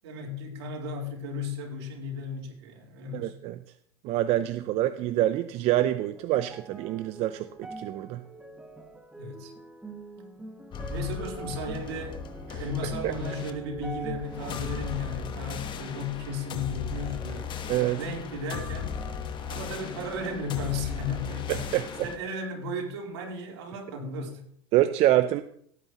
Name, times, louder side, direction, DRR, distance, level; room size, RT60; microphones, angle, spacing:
voice 1, 0.0-3.3 9.1-9.5 10.9-12.2 12.6-17.5 17.9-18.9 19.5-24.4, left 2 dB, 80° right, -1 dB, 3.9 m, -35 dB
voice 2, 3.1-3.6 4.0-8.2 12.5-13.1 17.7-18.0 21.5-22.1 24.7-25.4, right 14 dB, 50° right, 11 dB, 0.6 m, -26 dB
sound 1, 5.2-18.6 19.0-19.9 20.6-20.7, right 2 dB, 5° right, 1.5 m, -45 dB
sound 2, 10.7-22.2, left 6 dB, 35° left, 1.3 m, -37 dB
18.0 x 8.8 x 3.0 m, 0.64 s
supercardioid pair, 110°, 14 cm